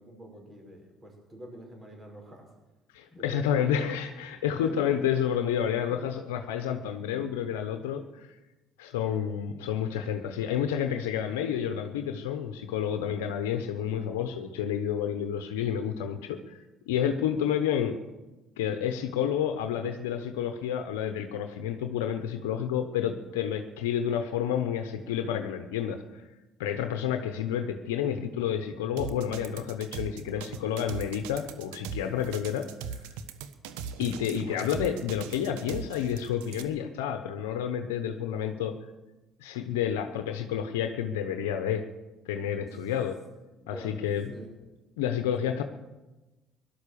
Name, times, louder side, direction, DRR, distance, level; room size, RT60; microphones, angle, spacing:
voice 1, 0.0-2.5 3.1-3.9 4.6-4.9 5.9-6.0 12.8-13.1 30.2-30.7 32.1-32.3 42.5-42.9 43.6-44.0 44.3-44.5 45.4-45.5, equal, 25° right, 2 dB, 5.8 m, -46 dB
voice 2, 2.9-8.3 8.8-16.6 16.9-18.0 18.6-26.2 26.6-33.0 34.0-38.8 39.4-41.8 42.3-43.2 43.7-44.3 45.0-45.6, left 9 dB, 90° left, 7 dB, 0.9 m, -30 dB
sound 1, 29.0-36.6, right 6 dB, 80° right, 1.1 m, -39 dB
17.5 x 12.0 x 6.9 m, 1.1 s
hypercardioid pair, 65°, 0 cm